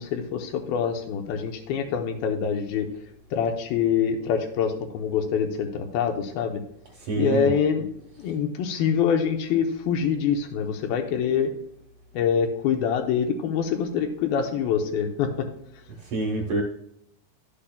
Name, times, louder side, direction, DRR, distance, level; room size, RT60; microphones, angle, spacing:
voice 1, 0.0-2.9 3.3-6.6 7.2-7.9 8.2-11.5 12.1-15.5, left 7 dB, 75° left, 4 dB, 2.5 m, -25 dB
voice 2, 7.0-7.5 16.0-16.6, right 3 dB, 65° right, -1 dB, 2.1 m, -27 dB
11.5 x 8.5 x 2.3 m, 0.72 s
omnidirectional pair, 4.7 m